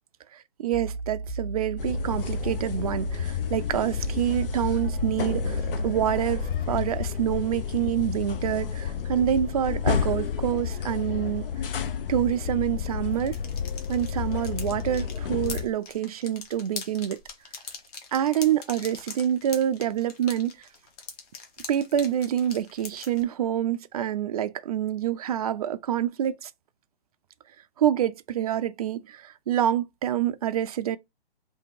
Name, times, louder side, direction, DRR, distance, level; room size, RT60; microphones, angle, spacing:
voice 1, 0.6-11.5 12.1-13.4 13.9-17.2 18.1-20.6 21.7-26.5 27.8-31.0, right 10 dB, 40° right, 0.4 m, -27 dB
sound 1, 0.7-7.1, right 1 dB, 5° left, 0.8 m, -34 dB
sound 2, 1.8-15.7, left 7 dB, 60° left, 0.8 m, -31 dB
sound 3, 13.1-23.2, left 5 dB, 35° left, 1.2 m, -42 dB
3.6 x 2.7 x 4.5 m
hypercardioid pair, 140°, 31 cm